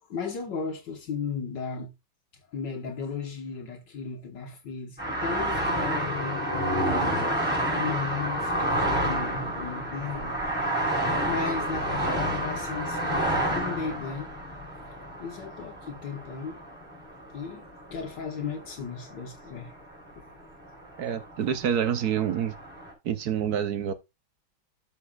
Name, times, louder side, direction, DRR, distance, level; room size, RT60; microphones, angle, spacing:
voice 1, 0.1-1.9 2.5-7.3 7.7-14.3 15.2-16.6 17.3-20.0, left 5 dB, 65° left, 1.9 m, -36 dB
sound 1, 5.0-18.3 18.6-19.3 19.6-20.3 20.6-22.9, right 1 dB, 5° left, 4.5 m, -29 dB
voice 2, 21.0-22.5 23.0-23.9, right 8 dB, 60° right, 1.2 m, -27 dB
12.5 x 5.5 x 2.4 m
omnidirectional pair, 2.2 m